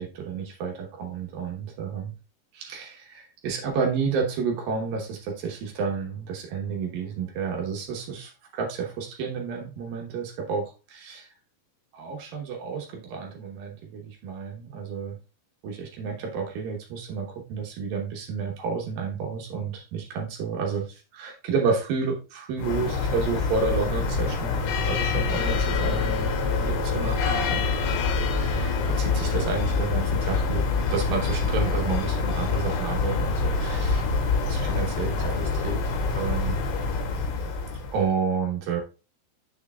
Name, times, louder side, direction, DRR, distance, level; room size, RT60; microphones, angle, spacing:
voice 1, 0.0-2.1 2.5-11.3 11.9-15.2 15.6-26.3 26.6-27.7 28.3-30.6 30.9-34.0 34.4-35.8 36.1-36.7 37.9-38.8, right 5 dB, 70° right, 1 dB, 2.2 m, -30 dB
sound 1, 22.6-38.1, left 4 dB, 70° left, 3.1 m, -26 dB
6.7 x 6.4 x 2.3 m, 0.31 s
omnidirectional pair, 5.5 m